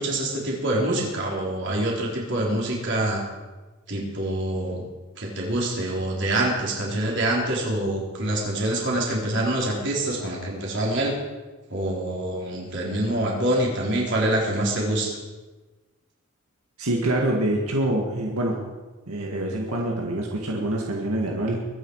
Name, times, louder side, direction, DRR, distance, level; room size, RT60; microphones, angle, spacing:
voice 1, 0.0-3.2 3.9-4.8 5.2-11.1 11.7-15.2, right 1 dB, 55° right, -2 dB, 4.0 m, -25 dB
voice 2, 16.8-18.6 19.1-21.6, right 1 dB, 90° right, 0 dB, 1.9 m, -25 dB
23.0 x 9.4 x 4.8 m, 1.2 s
head